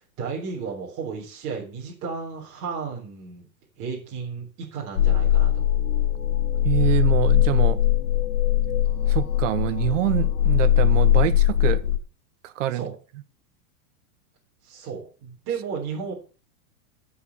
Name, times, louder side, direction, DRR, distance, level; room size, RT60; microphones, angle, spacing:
voice 1, 0.2-3.5 3.8-5.7 12.7-12.9 14.6-16.1, right 5 dB, 30° right, 3.7 m, -33 dB
sound 1, 5.0-12.0, left 11 dB, 80° left, 2.4 m, -20 dB
voice 2, 6.6-7.8 9.1-11.8 12.4-12.9, right 14 dB, 55° right, 1.1 m, -25 dB
13.5 x 5.2 x 6.9 m
supercardioid pair, 175°, 44 cm